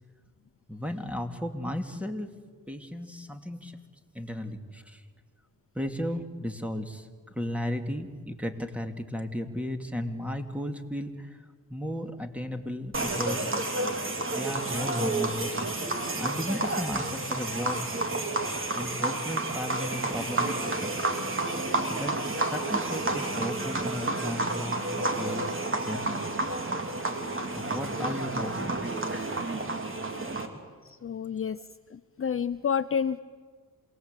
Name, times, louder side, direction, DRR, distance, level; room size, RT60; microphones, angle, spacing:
voice 1, 0.7-2.3 2.7-3.8 4.1-5.0 5.7-11.4 11.7-13.5 14.2-15.6 16.2-17.8 18.8-21.1 21.9-25.5 25.8-26.3 27.5-29.0 31.5-31.6, equal, 5° right, 5 dB, 2.6 m, -35 dB
sound 1, 12.9-30.5, right 2 dB, 35° right, 3.1 m, -30 dB
voice 2, 31.0-31.6 31.9-33.2, left 7 dB, 40° left, 13 dB, 0.7 m, -29 dB
27.5 x 19.5 x 8.3 m, 1.5 s
cardioid pair, 65°, 34 cm